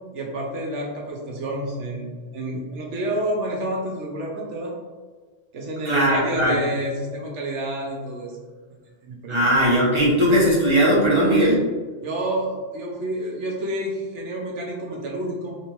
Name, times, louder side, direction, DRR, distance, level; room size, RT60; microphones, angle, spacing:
voice 1, 0.1-4.7 5.5-8.4 8.7-9.4 12.0-15.6, right 1 dB, 65° right, -1 dB, 1.1 m, -29 dB
voice 2, 5.8-6.6 9.3-11.6, equal, 25° right, -6 dB, 1.1 m, -18 dB
3.5 x 3.4 x 3.0 m, 1.4 s
omnidirectional pair, 1.3 m